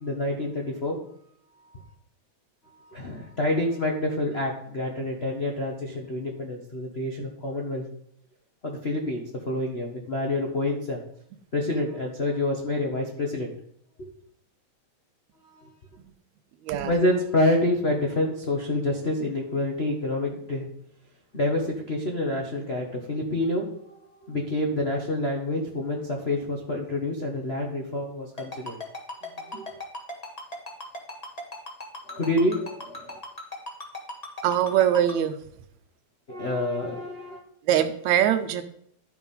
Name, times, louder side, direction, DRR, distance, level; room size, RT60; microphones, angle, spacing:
voice 1, 0.0-1.0 1.6-1.9 2.7-7.8 8.6-11.0 11.5-13.5 14.0-14.1 15.4-15.7 16.9-20.7 21.3-28.8 29.4-29.7 32.1-33.2 36.3-37.4, left 1 dB, 85° left, 0 dB, 0.5 m, -28 dB
voice 2, 16.6-16.9 29.2-29.6 34.4-35.4 37.6-38.7, right 10 dB, 80° right, 10 dB, 2.0 m, -23 dB
Ringtone, 28.4-35.1, left 2 dB, 20° left, 1.1 m, -36 dB
12.0 x 4.8 x 5.3 m, 0.68 s
omnidirectional pair, 3.3 m